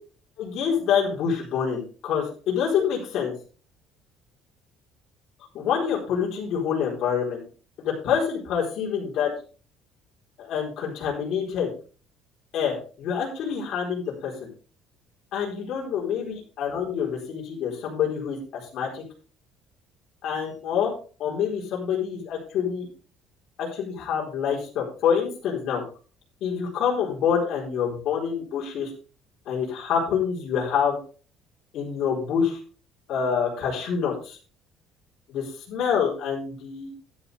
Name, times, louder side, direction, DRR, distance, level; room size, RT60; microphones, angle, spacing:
voice 1, 0.4-3.3 5.5-7.4 7.8-9.3 10.4-11.7 12.5-14.5 15.3-19.0 20.2-20.9 21.2-22.9 23.6-25.8 26.4-28.9 29.5-31.0 31.7-32.6 33.1-34.4 35.3-36.9, left 7 dB, 55° left, -3 dB, 4.3 m, -26 dB
11.5 x 11.0 x 3.5 m, 0.38 s
cardioid pair, 160°, 0 cm